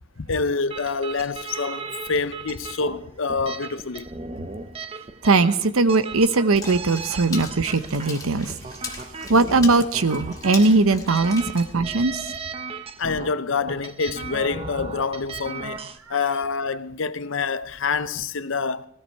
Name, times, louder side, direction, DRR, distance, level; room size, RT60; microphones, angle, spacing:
voice 1, 0.2-4.1 13.0-18.9, left 4 dB, 65° left, 0.7 m, -27 dB
sound 1, 0.7-16.0, right 4 dB, 25° right, 0.6 m, -37 dB
voice 2, 5.2-8.5 8.9-12.3, right 3 dB, 85° right, 0.9 m, -20 dB
Water / Splash splatter, 6.6-12.4, left 4 dB, 15° left, 1.7 m, -39 dB
18.5 x 14.0 x 4.6 m
head